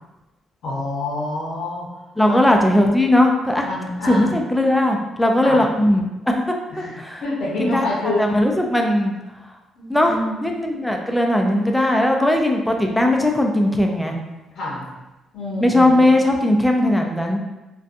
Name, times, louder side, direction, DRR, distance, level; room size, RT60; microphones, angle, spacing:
voice 1, 0.6-2.4 3.6-4.4 5.4-5.6 6.7-8.4 9.8-10.4 14.6-14.9 15.3-16.0, left 2 dB, 70° left, -6 dB, 0.7 m, -27 dB
voice 2, 2.2-3.7 4.1-6.4 6.8-7.2 7.6-7.8 8.2-9.1 9.9-10.1 10.4-14.2 15.6-17.4, left 1 dB, 5° left, 2 dB, 0.4 m, -18 dB
2.5 x 2.2 x 2.5 m, 1.1 s
cardioid pair, 90°, 0 cm